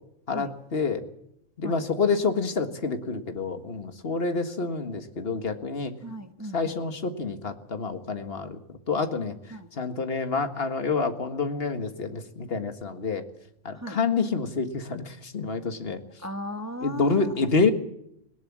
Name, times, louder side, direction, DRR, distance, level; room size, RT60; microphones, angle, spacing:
voice 1, 0.3-1.0 1.6-5.9 6.5-13.2 13.7-16.0 16.8-17.7, left 4 dB, 50° left, 7 dB, 1.9 m, -28 dB
voice 2, 6.0-6.8 9.5-9.7 13.7-14.0 16.2-17.3, equal, 15° right, 7 dB, 1.1 m, -36 dB
19.5 x 18.5 x 7.4 m, 0.77 s
omnidirectional pair, 1.3 m